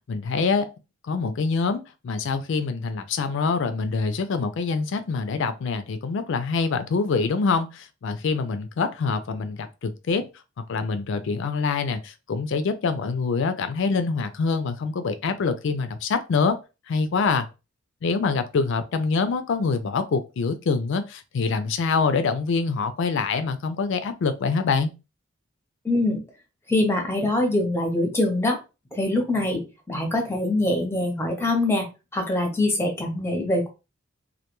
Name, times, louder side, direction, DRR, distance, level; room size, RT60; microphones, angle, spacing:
voice 1, 0.1-0.7 1.1-10.3 10.7-16.6 16.9-17.5 18.0-24.9, left 4 dB, 65° left, 0.4 m, -25 dB
voice 2, 25.8-26.2 26.7-28.6 28.9-31.9 32.1-33.7, left 1 dB, 10° left, 0.7 m, -24 dB
2.2 x 2.2 x 2.9 m
head